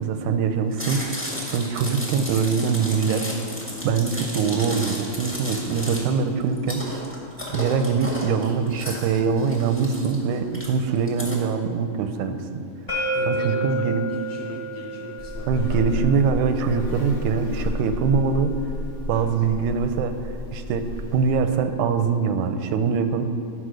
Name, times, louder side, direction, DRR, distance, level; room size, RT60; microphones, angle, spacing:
voice 1, 0.0-3.2 3.8-6.8 7.5-12.6 13.3-14.1 15.5-18.5 19.1-20.8 21.1-23.2, right 6 dB, 90° right, 8 dB, 2.1 m, -23 dB
Chewing mastication, 0.7-11.3, left 1 dB, 5° left, 0.9 m, -33 dB
sound 1, 12.9-18.7, right 1 dB, 30° left, 1.4 m, -32 dB
voice 2, 13.1-16.1 19.1-19.3, left 3 dB, 75° left, -1 dB, 1.5 m, -39 dB
Buzz, 15.2-21.3, left 2 dB, 60° left, 0.8 m, -31 dB
9.8 x 5.1 x 6.3 m, 2.4 s
omnidirectional pair, 3.4 m